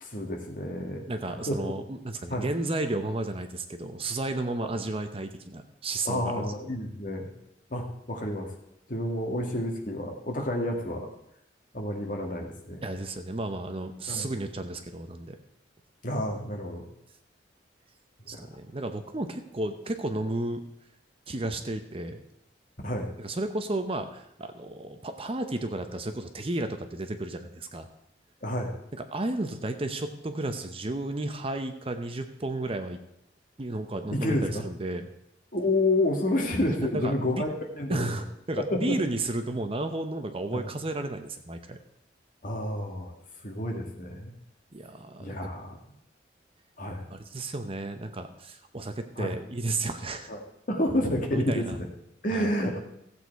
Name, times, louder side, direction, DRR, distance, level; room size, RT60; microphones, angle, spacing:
voice 1, 0.0-1.0 1.5-1.7 2.3-2.4 6.1-7.3 7.7-8.5 8.9-11.1 11.7-12.8 14.1-14.2 16.0-16.9 18.3-18.4 22.8-23.1 28.4-28.7 34.1-34.7 35.5-37.5 37.8-38.1 38.6-38.8 40.5-40.6 42.4-43.1 43.4-44.3 45.2-45.7 46.8-47.1 49.2-49.3 50.3-50.4 50.7-51.6 52.2-52.8, left 1 dB, 45° left, 2 dB, 1.9 m, -29 dB
voice 2, 1.1-6.4 12.8-15.4 18.3-20.6 21.3-22.2 23.2-27.9 28.9-33.0 33.6-35.1 36.8-37.5 37.9-41.8 44.7-45.4 47.1-50.3 51.3-51.8 52.3-52.5, right 2 dB, 30° right, 8 dB, 0.8 m, -33 dB
15.0 x 8.2 x 4.6 m, 0.78 s
head